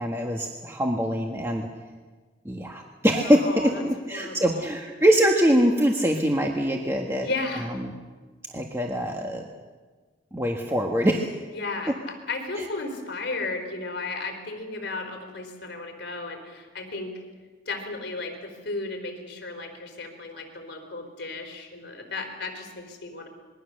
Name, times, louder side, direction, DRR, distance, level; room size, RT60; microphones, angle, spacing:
voice 1, 0.0-1.7 2.4-7.3 8.5-9.4 10.3-11.3 12.6-12.7, equal, 15° right, 0 dB, 1.5 m, -23 dB
voice 2, 3.2-3.8 4.1-4.7 7.2-7.7 11.5-17.2 17.7-23.3, left 3 dB, 60° left, 5 dB, 4.0 m, -34 dB
26.5 x 22.0 x 6.6 m, 1.4 s
head